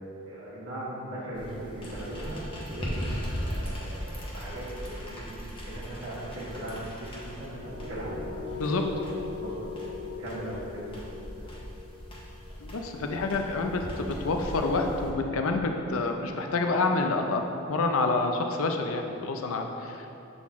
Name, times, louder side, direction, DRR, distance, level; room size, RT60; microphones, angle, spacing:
voice 1, 0.2-8.1 8.8-11.1 11.4-11.5, right 1 dB, 65° right, -10 dB, 1.3 m, -39 dB
sound 1, 1.3-15.1, equal, 25° left, 0.7 m, -39 dB
sound 2, 7.6-13.5, left 6 dB, 35° right, 0.8 m, -41 dB
voice 2, 8.5-8.9 12.6-20.2, left 3 dB, 70° left, 4 dB, 0.5 m, -28 dB
7.5 x 3.9 x 3.6 m, 2.8 s
head